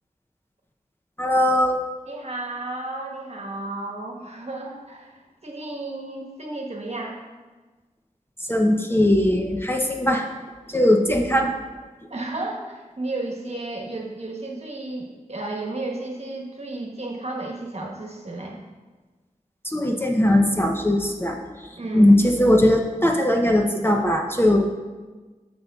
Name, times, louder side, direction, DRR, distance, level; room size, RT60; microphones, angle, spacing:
voice 1, 1.2-1.8 8.5-10.3 10.7-11.5 19.6-21.4 21.9-24.7, left 1 dB, 15° left, 3 dB, 0.6 m, -19 dB
voice 2, 2.1-5.1 5.4-7.2 12.1-18.6 21.8-22.2, right 2 dB, 50° right, 0 dB, 1.2 m, -33 dB
10.5 x 6.8 x 2.3 m, 1.3 s
wide cardioid pair, 70°, 14 cm